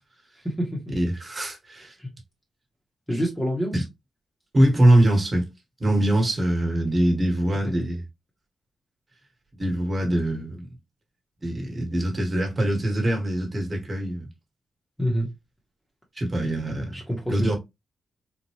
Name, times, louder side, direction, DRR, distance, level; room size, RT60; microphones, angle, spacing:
voice 1, 0.4-0.8 2.0-2.1 3.1-3.8 15.0-15.3 16.4-16.5 16.9-17.5, equal, 5° left, 0.8 m, -27 dB
voice 2, 0.9-1.9 3.7-3.8 4.5-5.4 5.8-8.0 9.6-10.7 11.4-14.3 16.2-17.0 17.3-17.5, right 1 dB, 30° right, 1.3 m, -23 dB
4.0 x 2.2 x 3.0 m
wide cardioid pair, 150°, 0 cm